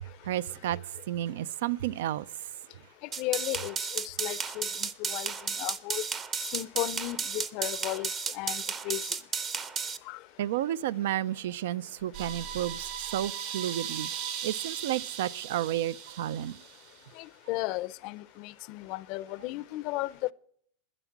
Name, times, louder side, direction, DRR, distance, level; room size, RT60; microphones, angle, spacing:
voice 1, 0.3-0.8 1.1-2.3 10.4-14.1 14.4-16.6, right 12 dB, 80° right, 0.4 m, -31 dB
sound 1, 3.1-10.0, right 5 dB, 20° right, 0.7 m, -33 dB
voice 2, 3.2-4.7 5.1-5.3 5.6-6.0 6.5-8.1 8.3-9.0 10.1-10.2 17.5-20.1, left 19 dB, 45° left, 0.5 m, -34 dB
sound 2, 12.1-17.0, right 8 dB, 50° right, 3.4 m, -38 dB
11.0 x 11.0 x 5.8 m
supercardioid pair, 160°, 0 cm